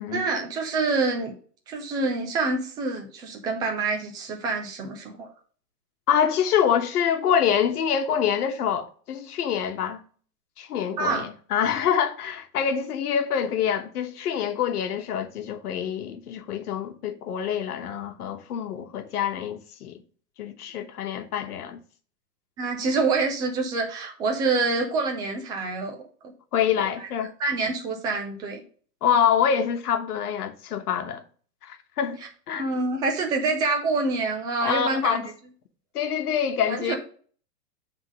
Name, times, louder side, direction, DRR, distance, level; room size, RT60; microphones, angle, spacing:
voice 1, 0.1-1.3 1.7-5.3 11.0-11.2 22.6-26.0 26.9-27.0 27.4-28.6 32.5-35.2 36.7-37.0, right 3 dB, 10° right, 0.5 m, -26 dB
voice 2, 6.1-10.0 10.6-20.0 20.4-21.8 26.5-27.3 29.0-31.2 31.6-32.6 34.6-35.3 35.9-37.0, left 8 dB, 70° left, 1.2 m, -26 dB
8.0 x 3.7 x 5.1 m
hypercardioid pair, 150°, 48 cm